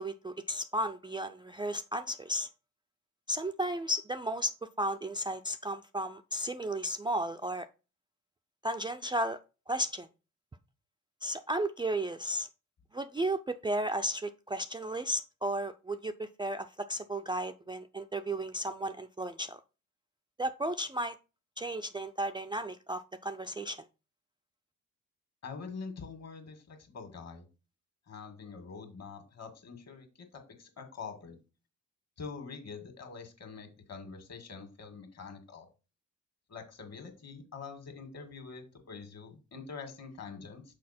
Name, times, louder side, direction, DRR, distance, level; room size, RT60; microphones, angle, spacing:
voice 1, 0.0-2.5 3.3-4.5 4.8-7.7 8.6-9.4 9.7-10.1 11.2-12.5 12.9-19.6 20.4-21.2 21.6-23.8, right 1 dB, 15° right, 0.4 m, -34 dB
voice 2, 25.4-27.5 28.1-31.4 32.2-35.7 36.5-40.6, left 5 dB, 55° left, 1.9 m, -45 dB
6.4 x 4.4 x 4.2 m
cardioid pair, 90°, 32 cm